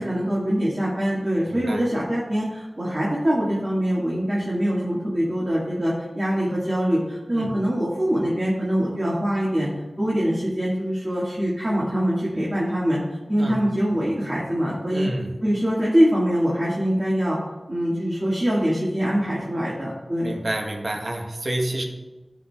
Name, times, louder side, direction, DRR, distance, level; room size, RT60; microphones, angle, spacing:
voice 1, 0.0-9.7 10.0-13.0 13.3-15.1 15.4-17.4 17.7-20.3, equal, 35° right, -7 dB, 1.7 m, -23 dB
voice 2, 1.5-1.9 7.3-7.5 13.4-13.6 14.9-15.3 20.2-21.8, right 1 dB, 60° right, 2 dB, 1.0 m, -29 dB
13.5 x 4.5 x 2.3 m, 1.1 s
wide cardioid pair, 50°, 0 cm